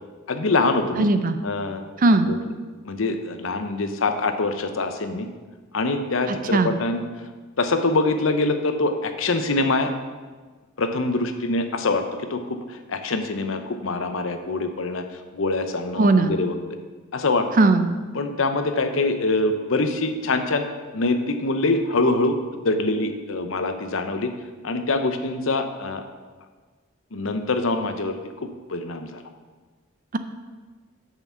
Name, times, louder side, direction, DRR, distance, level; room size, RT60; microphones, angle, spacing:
voice 1, 0.3-1.1 1.4-1.8 2.3-2.4 2.9-5.3 5.7-7.0 7.6-9.9 10.8-12.0 12.3-12.4 12.9-15.0 15.3-16.6 17.1-17.5 18.1-20.7 20.9-22.3 22.6-24.3 24.6-26.0 27.1-28.2 28.7-29.2, left 3 dB, 70° left, 8 dB, 0.8 m, -24 dB
voice 2, 1.0-1.4 2.0-2.3 6.3-6.7 16.0-16.4 17.6-17.9, right 2 dB, 40° right, 10 dB, 0.5 m, -18 dB
6.7 x 5.9 x 6.9 m, 1.4 s
head